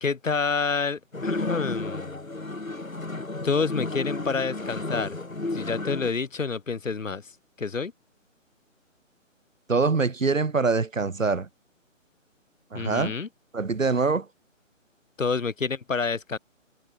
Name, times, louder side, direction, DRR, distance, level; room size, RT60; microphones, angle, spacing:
voice 1, 0.0-2.2 3.4-5.2 5.5-7.2 7.6-7.9 12.7-13.3 15.2-16.4, left 5 dB, 75° left, 1.2 m, -28 dB
sound 1, 1.1-6.1, left 2 dB, 90° left, 2.1 m, -32 dB
voice 2, 9.7-11.5 12.7-13.1 13.5-14.3, right 4 dB, 75° right, 1.8 m, -24 dB
figure-of-eight pair, 145°, 40 cm